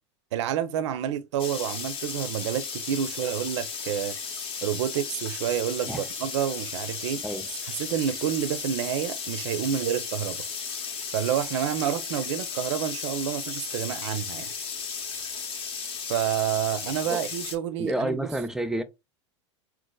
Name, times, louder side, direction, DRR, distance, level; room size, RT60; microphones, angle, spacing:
voice 1, 0.3-4.1 4.6-7.2 7.6-10.4 11.1-14.5 16.1-18.3, right 10 dB, 70° right, 0.4 m, -29 dB
sound 1, 1.4-17.6, left 6 dB, 35° left, 0.8 m, -35 dB
voice 2, 17.8-18.8, right 1 dB, 5° right, 0.4 m, -29 dB
3.9 x 2.4 x 2.2 m
hypercardioid pair, 90°, 16 cm